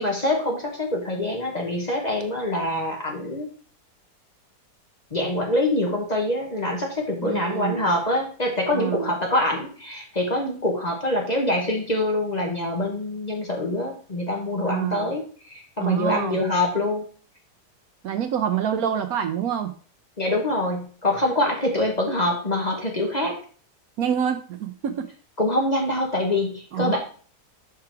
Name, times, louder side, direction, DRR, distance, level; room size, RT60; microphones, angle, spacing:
voice 1, 0.0-3.5 5.1-17.1 20.2-23.4 25.4-27.0, left 1 dB, 30° left, 0 dB, 1.1 m, -25 dB
voice 2, 7.2-7.9 8.7-9.1 14.6-15.1 15.8-16.4 18.0-19.7 24.0-25.1 26.7-27.0, right 9 dB, 70° right, 8 dB, 1.0 m, -26 dB
5.7 x 4.9 x 4.6 m, 0.42 s
omnidirectional pair, 1.8 m